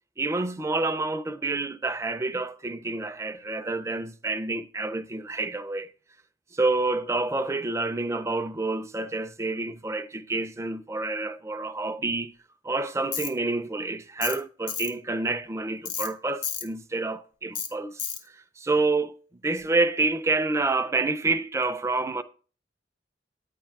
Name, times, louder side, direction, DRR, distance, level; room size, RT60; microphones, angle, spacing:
voice 1, 0.2-5.9 6.5-12.3 12.6-18.1 18.3-19.1 19.4-22.2, right 3 dB, 15° right, 0.3 m, -28 dB
Tools, 13.1-13.3 14.2-14.4 14.7-14.9 15.9-16.1 16.4-16.7 17.6-17.7 18.0-18.2, left 7 dB, 75° left, 0.9 m, -31 dB
9.1 x 3.4 x 4.6 m
head